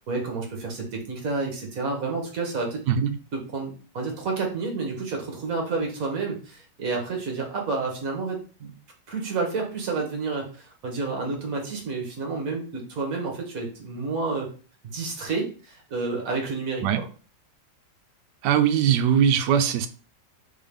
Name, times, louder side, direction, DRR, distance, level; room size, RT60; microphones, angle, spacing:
voice 1, 0.1-2.8 3.3-8.7 9.1-14.5 14.9-17.1, right 4 dB, 55° right, 1 dB, 1.5 m, -30 dB
voice 2, 18.4-19.9, right 9 dB, 75° right, 9 dB, 1.2 m, -20 dB
4.0 x 3.6 x 3.5 m, 0.38 s
omnidirectional pair, 1.9 m